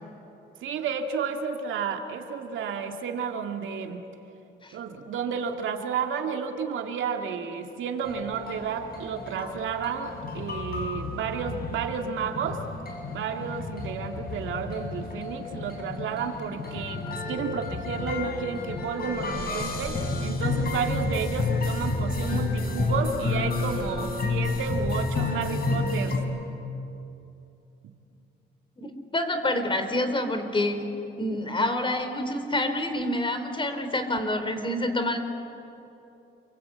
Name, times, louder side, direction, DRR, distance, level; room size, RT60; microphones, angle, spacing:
voice 1, 0.6-4.0 4.7-12.6 13.1-26.2, right 6 dB, 75° right, 4 dB, 2.3 m, -31 dB
sound 1, 8.0-26.2, left 3 dB, 50° left, 5.6 m, -30 dB
voice 2, 28.8-30.9 31.2-35.2, left 1 dB, 25° left, 7 dB, 3.6 m, -27 dB
29.0 x 23.5 x 8.5 m, 2.8 s
cardioid pair, 90°, 20 cm